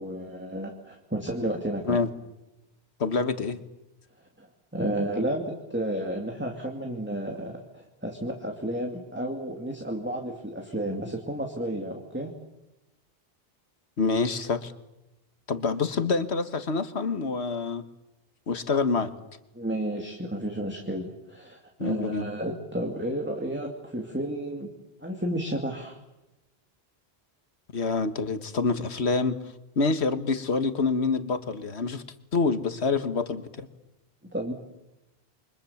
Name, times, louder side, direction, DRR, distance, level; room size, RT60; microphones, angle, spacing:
voice 1, 0.0-2.0 4.4-12.3 19.5-24.7 25.0-26.0 34.3-34.5, right 1 dB, 10° right, 2 dB, 2.5 m, -32 dB
voice 2, 3.0-3.6 14.0-14.7 15.5-17.8 18.5-19.1 21.8-22.3 27.7-29.4 29.8-32.0 32.3-33.7, left 4 dB, 90° left, 10 dB, 1.8 m, -26 dB
28.5 x 24.5 x 7.2 m, 0.95 s
omnidirectional pair, 1.1 m